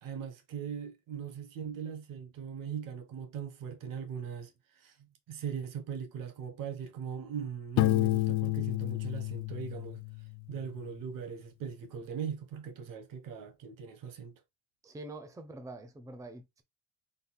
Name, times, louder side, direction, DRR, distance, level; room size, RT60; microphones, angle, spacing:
voice 1, 0.0-10.0 10.5-14.3, right 7 dB, 65° right, 1.5 m, -40 dB
Piano, 7.8-10.5, left 18 dB, 55° left, 0.4 m, -30 dB
voice 2, 14.8-16.6, right 2 dB, 10° right, 0.7 m, -45 dB
4.1 x 2.5 x 4.3 m
cardioid pair, 125°, 35 cm